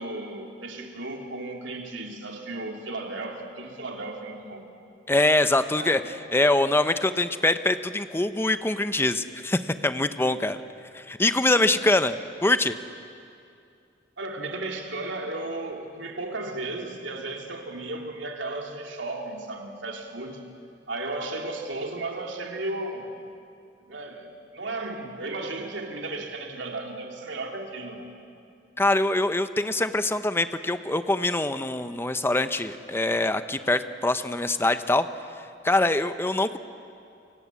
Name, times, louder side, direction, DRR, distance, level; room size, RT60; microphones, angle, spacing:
voice 1, 0.0-4.7 5.8-6.0 14.2-20.4 20.9-23.1 23.8-28.1, right 2 dB, 90° right, 2 dB, 3.2 m, -34 dB
voice 2, 5.1-10.6 10.9-12.7 28.8-35.1 35.6-36.6, left 2 dB, 15° left, 10 dB, 0.8 m, -24 dB
29.0 x 24.5 x 8.4 m, 2.5 s
head